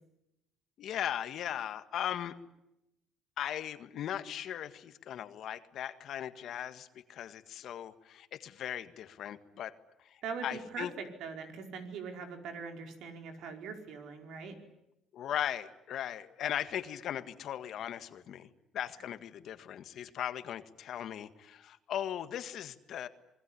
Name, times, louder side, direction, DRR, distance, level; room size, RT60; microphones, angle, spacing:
voice 1, 0.8-2.4 3.4-9.8 10.4-10.9 15.1-18.5 18.7-23.1, left 10 dB, 60° left, 11 dB, 1.7 m, -38 dB
voice 2, 10.2-14.6, right 5 dB, 70° right, 5 dB, 5.0 m, -42 dB
26.5 x 21.5 x 10.0 m, 0.87 s
cardioid pair, 110°, 0 cm